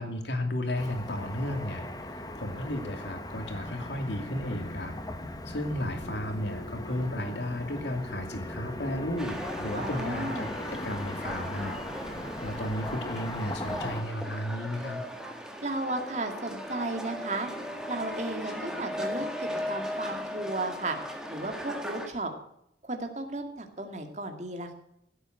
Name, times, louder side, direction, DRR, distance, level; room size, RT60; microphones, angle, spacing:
voice 1, 0.0-5.0 5.5-11.8 12.4-15.0, left 1 dB, 75° left, 5 dB, 2.6 m, -34 dB
Car passing by / Traffic noise roadway noise, 0.8-14.0, left 1 dB, 20° left, 1.2 m, -39 dB
sound 1, 9.2-22.1, equal, 5° right, 1.8 m, -38 dB
voice 2, 9.7-10.5 15.6-17.5 17.9-21.0 21.3-22.3 22.8-24.7, right 2 dB, 40° right, 4 dB, 2.3 m, -34 dB
16.5 x 8.3 x 7.9 m, 0.77 s
head